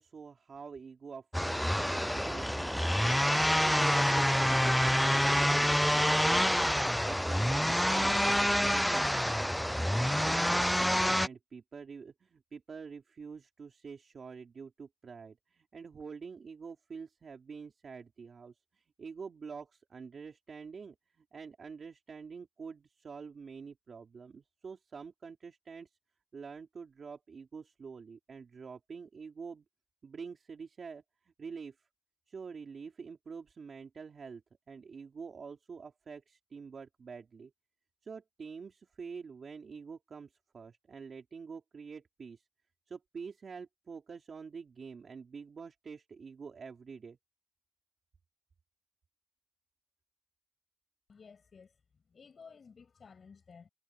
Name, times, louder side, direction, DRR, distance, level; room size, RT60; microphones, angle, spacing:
voice 1, 0.0-9.6 9.9-26.0 26.3-29.7 30.0-31.9 32.3-34.4 34.7-37.5 38.0-42.5 42.9-47.2, right 5 dB, 85° right, 3.9 m, -47 dB
sound 1, 1.3-11.3, equal, 5° left, 0.5 m, -27 dB
voice 2, 51.1-53.7, left 5 dB, 80° left, 6.9 m, -55 dB
cardioid pair, 45°, 0 cm